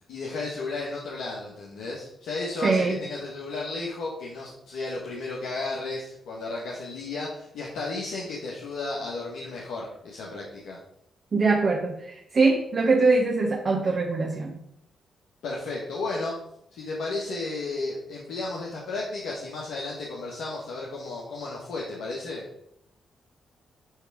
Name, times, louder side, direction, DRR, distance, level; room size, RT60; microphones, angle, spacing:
voice 1, 0.1-10.8 15.4-16.4 16.7-22.4, left 3 dB, 80° left, -3 dB, 1.5 m, -33 dB
voice 2, 2.6-3.0 11.3-14.6, right 3 dB, 50° right, -1 dB, 1.4 m, -23 dB
9.8 x 3.5 x 4.8 m, 0.76 s
supercardioid pair, 60°, 0 cm